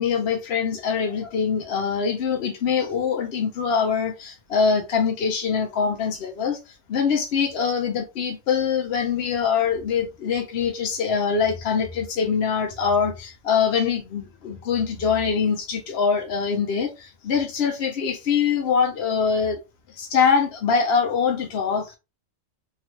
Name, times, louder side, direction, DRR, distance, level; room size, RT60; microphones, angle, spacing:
voice 1, 0.0-19.6 19.9-21.9, left 6 dB, 65° left, 0.8 m, -23 dB
2.9 x 2.4 x 3.1 m
omnidirectional pair, 1.2 m